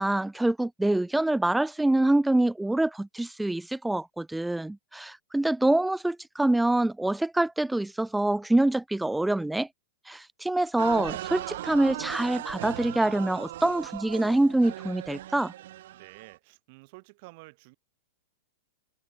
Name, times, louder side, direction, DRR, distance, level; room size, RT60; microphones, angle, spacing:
voice 1, 0.0-9.7 10.1-15.5, right 1 dB, 5° right, 1.0 m, -25 dB
sound 1, 10.8-16.3, right 14 dB, 70° right, 1.6 m, -38 dB
voice 2, 15.9-17.8, right 27 dB, 50° right, 7.6 m, -50 dB
hypercardioid pair, 135°, 0 cm